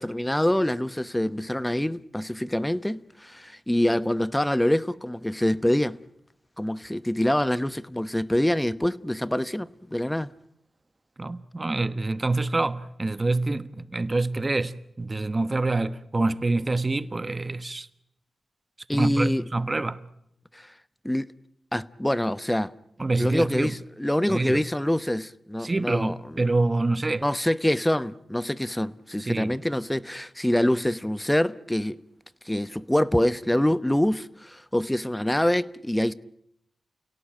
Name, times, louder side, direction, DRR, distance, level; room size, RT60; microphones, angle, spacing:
voice 1, 0.0-6.0 6.6-10.3 18.9-19.4 20.5-20.7 21.0-21.3 21.7-22.7 23.2-26.5 27.2-32.0 32.5-36.1, left 1 dB, 10° left, 0.9 m, -25 dB
voice 2, 11.2-17.9 18.9-20.0 23.0-23.7 24.3-24.6 25.6-27.2 29.2-29.5, right 2 dB, 30° right, 1.3 m, -26 dB
29.0 x 17.5 x 8.9 m
cardioid pair, 55°, 0 cm